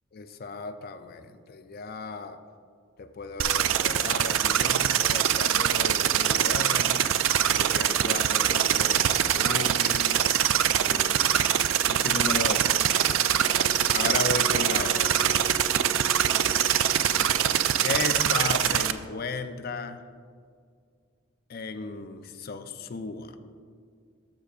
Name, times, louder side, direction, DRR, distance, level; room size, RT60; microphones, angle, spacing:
voice 1, 0.1-2.4 3.0-7.0 7.6-10.2 10.9-13.0 13.9-15.5 17.8-20.0 21.5-23.4, left 3 dB, 45° left, 8 dB, 0.4 m, -35 dB
sound 1, 3.4-18.9, right 10 dB, 75° right, 0.3 m, -23 dB
sound 2, 6.5-17.7, left 1 dB, 30° right, 1.1 m, -44 dB
12.0 x 6.5 x 2.4 m, 2.1 s
head